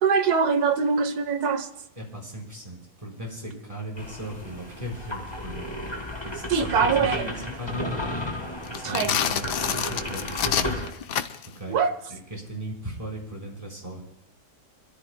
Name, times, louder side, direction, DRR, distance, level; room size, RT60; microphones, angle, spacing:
voice 1, 0.0-1.7 6.5-7.3 8.8-9.1 11.7-11.9, right 6 dB, 70° right, 9 dB, 1.5 m, -23 dB
voice 2, 2.0-5.8 6.2-8.1 8.7-10.9 11.5-11.8 12.1-14.0, right 1 dB, 20° right, -2 dB, 4.2 m, -37 dB
sound 1, 4.0-10.9, left 1 dB, 15° left, 1.9 m, -33 dB
sound 2, 8.7-11.6, left 9 dB, 90° left, 1.4 m, -27 dB
26.0 x 13.5 x 2.2 m, 0.83 s
omnidirectional pair, 1.7 m